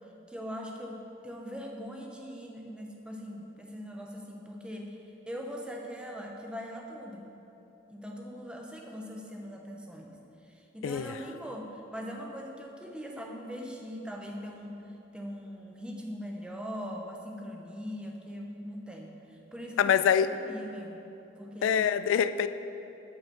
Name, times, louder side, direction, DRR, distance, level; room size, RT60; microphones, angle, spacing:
voice 1, 0.3-5.0 5.3-7.3 7.9-10.2 10.5-14.8 15.1-21.0 21.4-21.8, equal, 5° right, 1 dB, 0.8 m, -41 dB
voice 2, 10.8-11.1 19.8-20.3 21.6-22.5, left 8 dB, 85° left, 12 dB, 0.3 m, -24 dB
8.9 x 5.6 x 6.8 m, 2.9 s
head